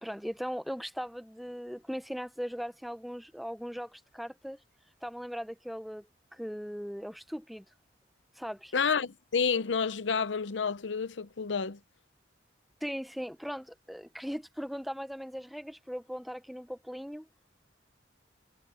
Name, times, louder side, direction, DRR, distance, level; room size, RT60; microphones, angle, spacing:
voice 1, 0.0-4.6 5.0-7.6 8.4-8.7 12.8-17.3, equal, ahead, 0.9 m, -39 dB
voice 2, 8.7-11.8, left 5 dB, 75° left, 0.7 m, -29 dB
head